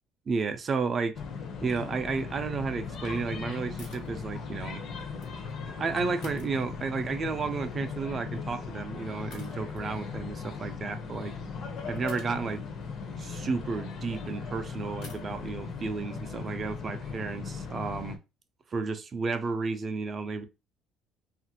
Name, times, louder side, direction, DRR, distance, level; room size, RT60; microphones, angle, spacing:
voice 1, 0.3-1.1 1.6-4.8 5.8-11.3 11.9-12.6 13.2-18.2 18.7-20.4, right 4 dB, 30° right, 0.4 m, -32 dB
sound 1, 1.1-18.2, left 5 dB, 50° left, 0.5 m, -38 dB
sound 2, 3.8-4.1 5.0-5.6 6.2-7.1 8.4-8.6 9.3-9.9 11.4-11.5 12.1-14.2 15.0-15.3, left 4 dB, 90° left, 1.1 m, -52 dB
2.9 x 2.4 x 2.8 m
cardioid pair, 155°, 0 cm